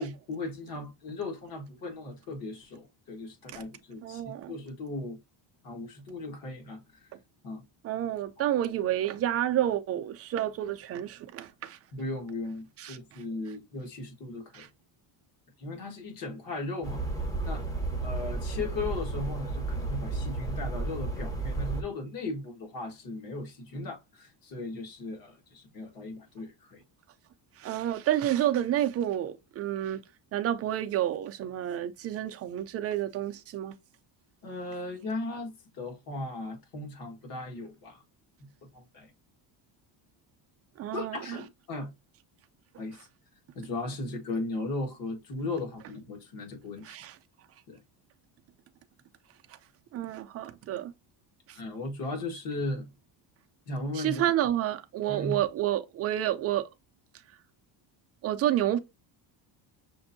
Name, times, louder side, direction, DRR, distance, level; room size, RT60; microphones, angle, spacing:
voice 1, 0.0-5.2 5.6-7.1 7.4-7.6 11.9-14.7 15.6-17.0 17.4-17.7 18.0-26.8 34.4-38.0 38.7-39.1 40.9-41.9 42.8-43.1 43.5-47.0 47.7-47.8 51.5-52.9 53.7-54.2 55.1-55.4, left 2 dB, 45° left, 1.6 m, -37 dB
voice 2, 4.0-4.5 7.8-11.8 12.8-13.0 14.5-14.7 27.6-30.0 30.3-33.7 40.8-41.4 46.8-47.2 49.5-49.6 49.9-50.9 51.5-51.6 53.9-56.7 58.2-58.8, right 12 dB, 35° right, 0.4 m, -29 dB
sound 1, 16.8-21.8, right 3 dB, 10° left, 0.8 m, -32 dB
6.1 x 2.6 x 2.6 m
cardioid pair, 170°, 46 cm